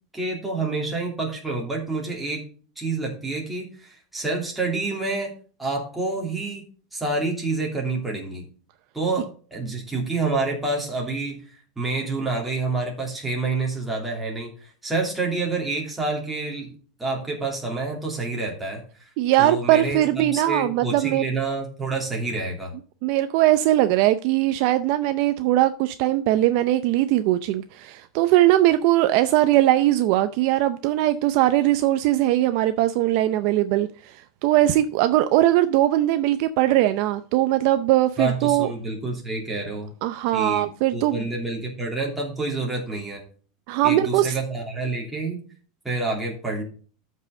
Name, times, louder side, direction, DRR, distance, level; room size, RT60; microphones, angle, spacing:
voice 1, 0.1-2.4 2.8-5.3 5.6-8.4 8.9-9.3 9.5-16.7 17.0-18.8 19.4-22.7 38.2-39.9 40.3-43.2 43.8-45.4 45.8-46.6, right 3 dB, 5° right, -2 dB, 2.8 m, -28 dB
voice 2, 19.2-21.3 23.0-38.7 40.0-41.3 43.7-44.4, right 14 dB, 45° right, 11 dB, 0.5 m, -20 dB
13.5 x 5.5 x 3.7 m, 0.41 s
supercardioid pair, 170°, 2 cm